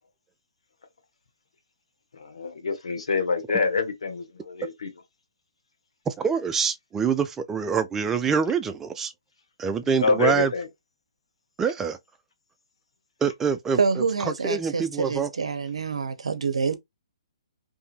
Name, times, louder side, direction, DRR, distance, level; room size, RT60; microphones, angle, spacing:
voice 1, 2.2-4.9 10.0-10.7, left 4 dB, 75° left, 0.9 m, -26 dB
voice 2, 6.1-9.1 9.6-10.5 11.6-12.0 13.2-15.3, right 6 dB, 10° right, 0.3 m, -25 dB
voice 3, 13.8-16.8, right 5 dB, 75° right, 0.6 m, -26 dB
2.7 x 2.5 x 2.4 m
figure-of-eight pair, 135°, 3 cm